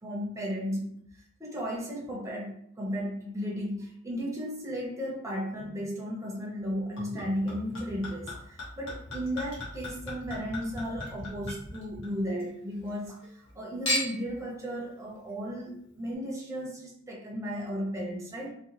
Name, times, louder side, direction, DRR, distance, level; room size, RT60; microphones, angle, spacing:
voice 1, 0.0-0.9 1.4-18.5, equal, 15° right, -2 dB, 0.6 m, -35 dB
Chink clink / Liquid, 7.0-12.5 12.8-13.5 13.9-14.4 15.1-15.2, left 1 dB, 60° left, 1.4 m, -37 dB
3.7 x 2.2 x 2.9 m, 0.66 s
head